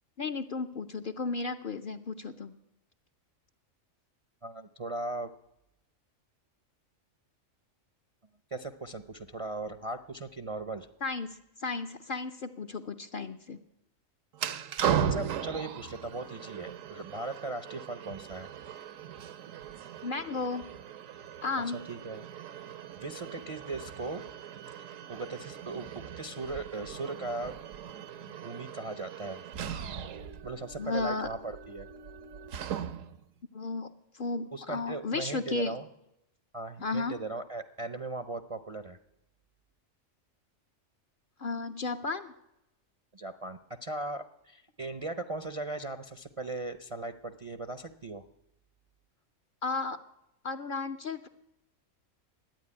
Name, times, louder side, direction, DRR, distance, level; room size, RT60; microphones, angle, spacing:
voice 1, 0.2-2.5 11.0-13.6 20.0-20.7 21.4-21.9 30.8-31.3 33.5-35.7 36.8-37.2 41.4-42.3 49.6-50.0 50.4-51.3, left 3 dB, 55° left, 7 dB, 0.7 m, -34 dB
voice 2, 4.4-5.3 8.5-10.9 15.1-18.5 21.7-22.3 22.6-24.2 24.8-27.6 28.2-29.4 30.4-31.9 34.5-35.9 36.5-39.0 43.1-48.2, right 2 dB, 40° right, 9 dB, 0.5 m, -38 dB
sound 1, 14.3-33.2, right 8 dB, 80° right, 1.1 m, -38 dB
12.0 x 9.2 x 9.7 m, 0.85 s
omnidirectional pair, 1.4 m